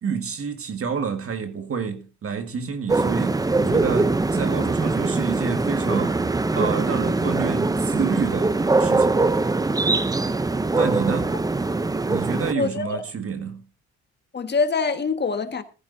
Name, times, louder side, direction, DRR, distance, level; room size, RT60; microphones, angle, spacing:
voice 1, 0.0-6.2 6.6-9.3 10.7-11.3 12.1-13.6, right 6 dB, 50° right, 1.8 m, -28 dB
sound 1, 2.9-12.5, right 3 dB, 10° right, 0.6 m, -22 dB
voice 2, 12.5-13.0 14.3-15.6, left 4 dB, 35° left, 1.6 m, -24 dB
15.0 x 14.5 x 2.7 m
cardioid pair, 90°, 30 cm